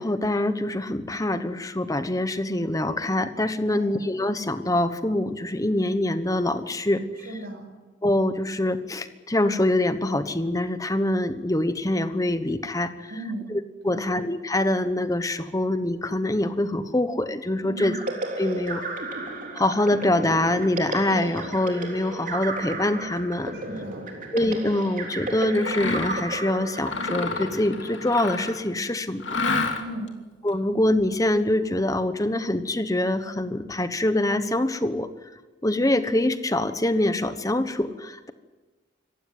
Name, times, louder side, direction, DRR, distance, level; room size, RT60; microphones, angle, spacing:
voice 1, 0.0-7.0 8.0-13.1 13.5-17.9 18.4-18.8 19.5-23.5 24.3-29.4 30.4-35.1 35.6-38.3, left 1 dB, 20° left, 11 dB, 1.1 m, -24 dB
voice 2, 3.6-4.0 7.2-7.7 13.1-13.5 13.8-14.1 17.6-17.9 23.5-24.1 29.7-30.1, right 1 dB, 60° right, 1 dB, 6.3 m, -36 dB
sound 1, 17.8-28.4, right 2 dB, 45° right, 3.7 m, -34 dB
Mechanisms, 25.5-26.3 26.8-28.7 29.2-30.1, left 3 dB, 75° left, 2.7 m, -29 dB
26.0 x 15.0 x 9.4 m, 1.3 s
head